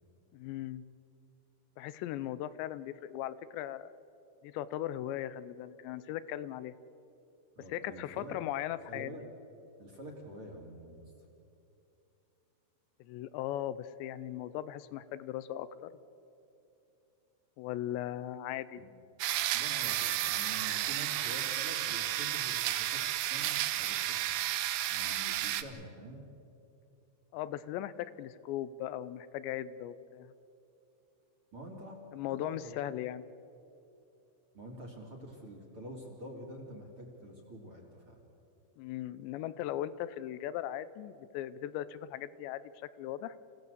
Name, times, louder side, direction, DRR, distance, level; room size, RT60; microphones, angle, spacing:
voice 1, 0.3-0.8 1.8-4.0 4.4-6.7 7.7-9.1 13.0-15.9 17.6-18.8 27.3-30.3 32.1-33.3 38.8-43.4, left 12 dB, 80° left, 16 dB, 2.7 m, -38 dB
voice 2, 7.6-8.4 8.9-9.2 9.8-11.1 18.8-18.9 19.3-24.4 24.9-26.2 31.5-32.0 32.3-32.8 34.5-38.2, right 1 dB, 40° right, 1 dB, 2.3 m, -47 dB
sound 1, 19.2-25.6, right 13 dB, 75° right, 2.6 m, -32 dB
28.0 x 16.5 x 8.0 m, 2.8 s
omnidirectional pair, 5.3 m